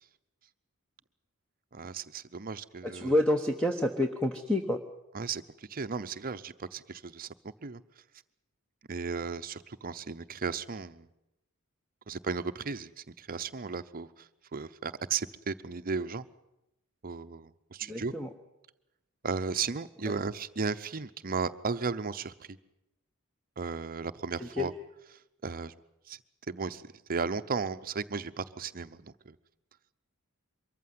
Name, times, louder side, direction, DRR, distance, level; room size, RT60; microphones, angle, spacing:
voice 1, 1.7-3.1 5.1-7.8 8.9-11.1 12.1-16.3 17.0-18.1 19.2-22.6 23.6-24.7 25.4-25.7 26.1-26.2 26.5-29.4, right 5 dB, 40° right, 11 dB, 0.8 m, -35 dB
voice 2, 2.8-4.8 17.8-18.3 20.0-20.2 24.4-24.7, left 1 dB, 5° left, 4 dB, 1.1 m, -29 dB
23.5 x 14.5 x 9.5 m, 0.90 s
head